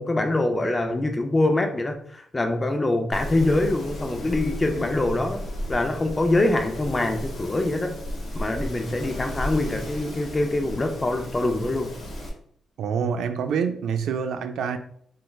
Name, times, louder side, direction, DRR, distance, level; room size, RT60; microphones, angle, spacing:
voice 1, 0.0-5.4 5.7-8.0 8.3-11.9, left 2 dB, 20° left, 0.4 m, -24 dB
Wind, 3.1-12.3, equal, 60° left, 0.9 m, -34 dB
voice 2, 12.8-14.8, right 6 dB, 85° right, 0.3 m, -26 dB
3.2 x 3.1 x 2.3 m
wide cardioid pair, 155°, 0 cm